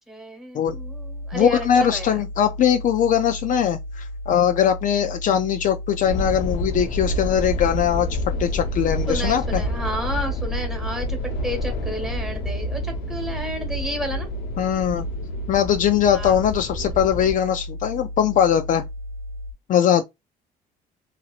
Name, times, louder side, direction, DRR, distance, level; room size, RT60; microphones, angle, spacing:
voice 1, 0.1-1.7 1.9-2.2 9.1-11.2 11.4-14.3 16.1-16.4, equal, ahead, 1.3 m, -31 dB
sound 1, 0.7-19.5, equal, 70° right, 0.5 m, -34 dB
voice 2, 1.3-9.6 14.6-15.1 15.5-18.8 19.7-20.0, left 9 dB, 50° left, 0.4 m, -21 dB
sound 2, 6.1-17.4, equal, 85° left, 0.7 m, -28 dB
2.9 x 2.8 x 2.4 m
cardioid pair, 110°, 17 cm